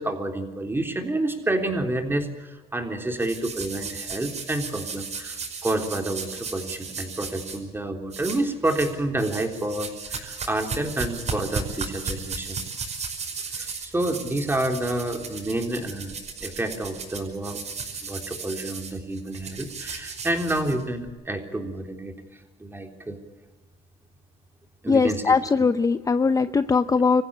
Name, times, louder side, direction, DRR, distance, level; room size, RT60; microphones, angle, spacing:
voice 1, 0.0-12.6 13.5-17.6 18.0-22.1 22.6-23.2 24.8-25.7, right 1 dB, 15° right, 4 dB, 3.6 m, -29 dB
sound 1, 3.2-7.6 8.1-8.9 9.2-21.1, right 5 dB, 40° right, 5.6 m, -35 dB
voice 2, 24.9-27.2, left 5 dB, 20° left, 12 dB, 0.6 m, -20 dB
26.0 x 15.5 x 8.5 m, 1.3 s
cardioid pair, 110°, 17 cm